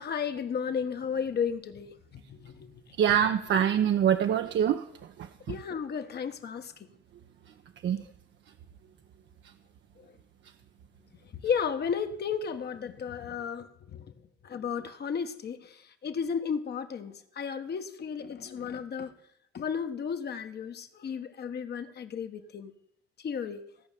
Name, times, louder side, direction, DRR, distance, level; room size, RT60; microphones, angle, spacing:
voice 1, 0.0-2.8 3.1-3.2 5.5-6.9 10.0-10.1 11.3-14.1 14.4-19.1 19.5-22.7 23.2-23.6, left 6 dB, 55° left, 1.4 m, -34 dB
voice 2, 3.0-4.8 7.8-8.0, right 9 dB, 65° right, 0.8 m, -24 dB
16.5 x 5.6 x 9.2 m
cardioid pair, 90°, 20 cm